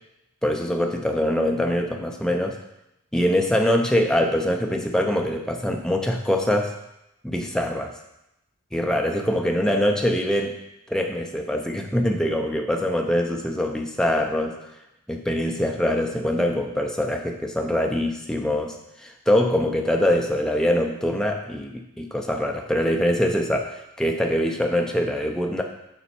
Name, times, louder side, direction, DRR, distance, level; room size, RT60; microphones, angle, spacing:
voice 1, 0.4-2.6 3.1-6.8 7.2-7.9 8.7-10.6 10.9-14.6 15.1-25.6, left 1 dB, 5° left, 2 dB, 0.5 m, -23 dB
7.0 x 4.3 x 4.3 m, 0.87 s
head